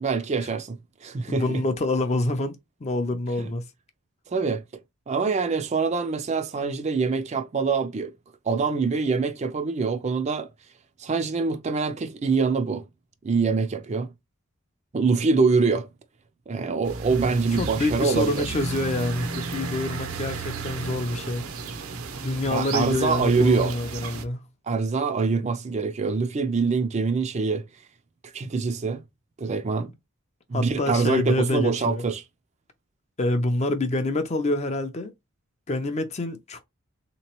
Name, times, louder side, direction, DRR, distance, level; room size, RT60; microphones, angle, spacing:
voice 1, 0.0-1.6 3.4-3.5 4.3-4.8 5.1-8.1 8.5-10.5 11.0-12.8 13.2-14.1 14.9-15.9 16.5-18.5 22.5-23.8 24.7-27.6 28.3-29.0 29.4-29.9 30.5-32.2, right 4 dB, 30° right, 0.4 m, -24 dB
voice 2, 1.3-3.7 17.6-21.5 22.2-24.4 30.5-32.1 33.2-35.1 35.7-36.6, left 2 dB, 30° left, 0.5 m, -27 dB
sound 1, 16.8-24.2, right 4 dB, 75° right, 0.6 m, -34 dB
3.6 x 2.9 x 2.9 m
head